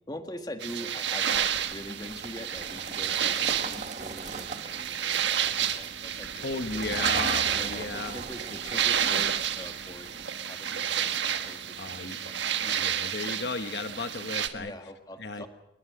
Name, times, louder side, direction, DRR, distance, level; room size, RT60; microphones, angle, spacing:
voice 1, 0.1-6.9 7.4-12.8 14.5-15.5, left 1 dB, 20° left, 6 dB, 1.9 m, -43 dB
sound 1, 0.6-14.5, right 9 dB, 70° right, 1.5 m, -30 dB
sound 2, 1.3-10.2, right 3 dB, 40° right, 1.5 m, -42 dB
voice 2, 6.4-8.2 11.8-12.3 12.6-14.7 15.2-15.5, left 3 dB, 60° left, 8 dB, 1.3 m, -35 dB
27.0 x 22.5 x 6.4 m, 0.84 s
head